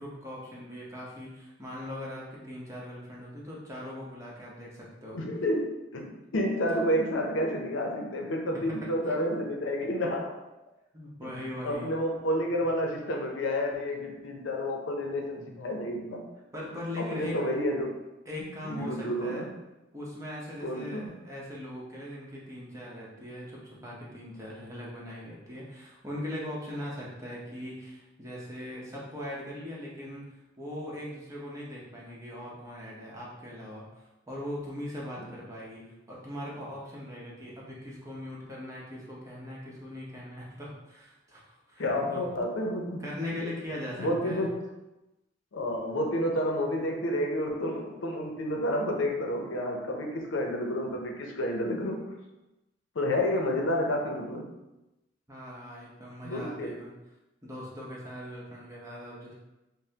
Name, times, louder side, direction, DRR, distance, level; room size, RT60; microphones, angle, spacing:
voice 1, 0.0-5.2 10.9-11.9 15.4-15.5 16.5-17.4 18.3-19.5 19.9-42.2 43.0-44.4 55.3-56.9 57.4-59.3, left 1 dB, 15° right, -5 dB, 0.8 m, -40 dB
voice 2, 5.1-10.3 11.2-11.3 11.6-16.3 17.0-18.0 18.6-19.5 20.6-21.1 41.8-43.0 43.3-43.5 44.0-44.5 45.5-52.1 52.9-54.5 56.2-56.7, equal, 75° left, 1 dB, 0.6 m, -30 dB
5.3 x 2.0 x 2.8 m, 0.99 s
head